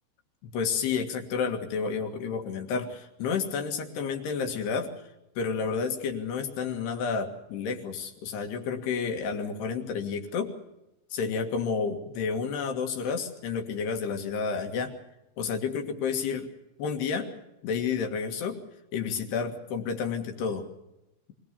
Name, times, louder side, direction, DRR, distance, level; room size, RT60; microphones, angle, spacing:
voice 1, 0.4-4.9 5.4-10.5 11.1-14.9 15.4-16.5 16.8-17.3 17.6-18.6 18.9-20.7, left 5 dB, 60° left, 5 dB, 3.7 m, -30 dB
25.5 x 18.5 x 6.8 m, 0.89 s
omnidirectional pair, 5.8 m